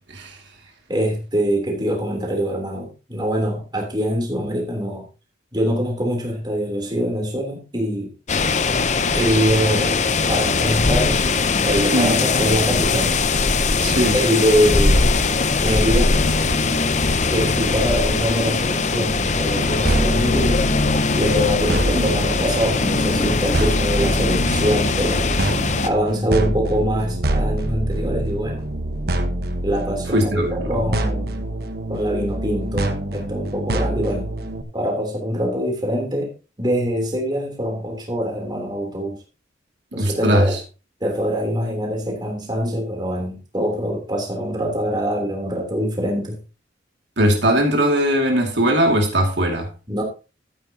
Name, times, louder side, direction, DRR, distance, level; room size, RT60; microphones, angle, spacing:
voice 1, 0.9-5.1 5.5-8.1 9.1-10.0 10.3-11.2 11.7-13.1 14.1-15.1 15.6-16.1 17.3-20.6 21.1-25.3 25.8-28.6 29.6-31.5 31.9-34.3 34.7-36.3 36.6-39.2 39.9-40.6 41.0-46.4 49.9-50.0, equal, 25° right, 3.3 m, -23 dB
sound 1, 8.3-25.9, left 4 dB, 40° left, 0.7 m, -20 dB
voice 2, 13.8-14.2 21.9-22.1 30.1-30.7 40.0-40.6 47.2-49.7, right 1 dB, 70° right, 2.3 m, -19 dB
sound 2, 19.9-34.6, right 1 dB, 55° right, 1.2 m, -25 dB
13.5 x 9.2 x 2.9 m
head